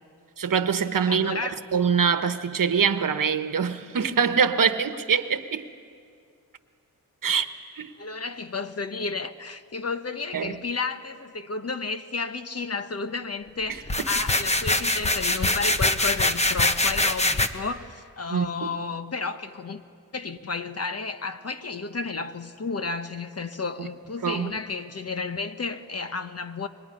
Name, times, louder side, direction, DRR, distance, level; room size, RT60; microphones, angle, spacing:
voice 1, 0.4-1.4 1.7-5.7 7.2-7.9 10.3-10.5 18.3-18.7 24.2-24.5, right 6 dB, 65° right, 1.2 m, -24 dB
voice 2, 1.1-1.7 8.0-19.8 20.1-26.7, left 4 dB, 45° left, 1.2 m, -32 dB
sound 1, 13.9-17.5, left 2 dB, 20° left, 1.1 m, -23 dB
25.0 x 22.5 x 9.9 m
wide cardioid pair, 115°, 36 cm